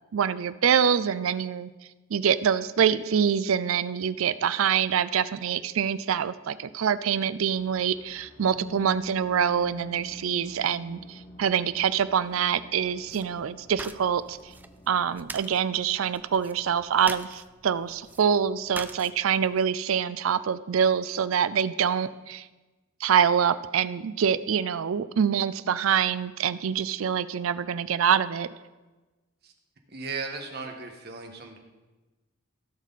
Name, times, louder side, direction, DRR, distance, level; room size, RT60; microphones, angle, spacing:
voice 1, 0.1-1.7 2.1-11.0 11.4-14.4 14.9-22.4 23.0-28.5, right 8 dB, 85° right, 15 dB, 0.4 m, -25 dB
sound 1, 7.6-15.2, left 1 dB, 35° left, 2.4 m, -46 dB
sound 2, 13.1-19.6, right 2 dB, 10° right, 0.3 m, -44 dB
voice 2, 29.9-31.6, right 4 dB, 50° right, 3 dB, 1.5 m, -36 dB
16.0 x 6.4 x 4.1 m, 1.2 s
head